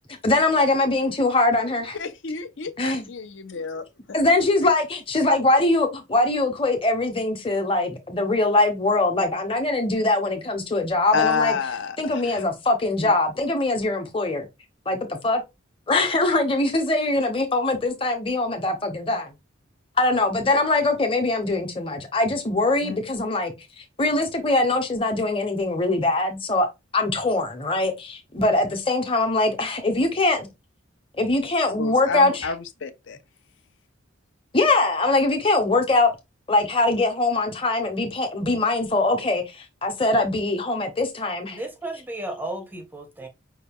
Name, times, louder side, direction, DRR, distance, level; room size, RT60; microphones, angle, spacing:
voice 1, 0.2-2.0 2.8-3.1 4.1-11.6 12.0-14.5 14.9-15.4 15.9-19.3 20.0-26.7 26.9-30.5 31.1-32.5 34.5-36.1 36.5-41.6, left 2 dB, 25° left, 0.9 m, -22 dB
voice 2, 1.9-3.8 11.1-12.4 13.0-13.1 22.8-23.0 31.8-33.2, left 5 dB, 70° left, 0.6 m, -29 dB
voice 3, 41.5-43.3, right 1 dB, 10° right, 0.5 m, -34 dB
5.4 x 2.3 x 3.5 m
head